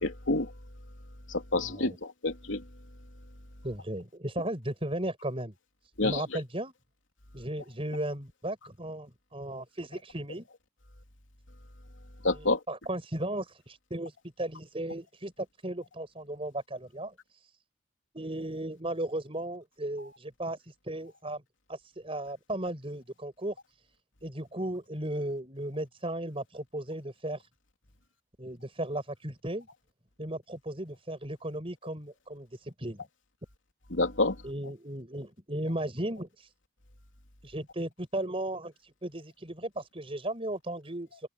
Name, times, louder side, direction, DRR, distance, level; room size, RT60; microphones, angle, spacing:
voice 1, 0.0-0.5 1.5-1.9 2.2-2.6 6.0-6.2 12.2-12.6 33.9-34.3, left 2 dB, 70° left, 3.1 m, -27 dB
voice 2, 1.6-2.0 3.6-5.5 6.0-6.7 7.3-10.5 12.3-17.5 18.1-21.4 21.7-23.8 24.2-27.5 28.4-29.7 30.2-33.0 34.4-36.5 37.4-41.3, right 1 dB, 30° right, 6.3 m, -36 dB
head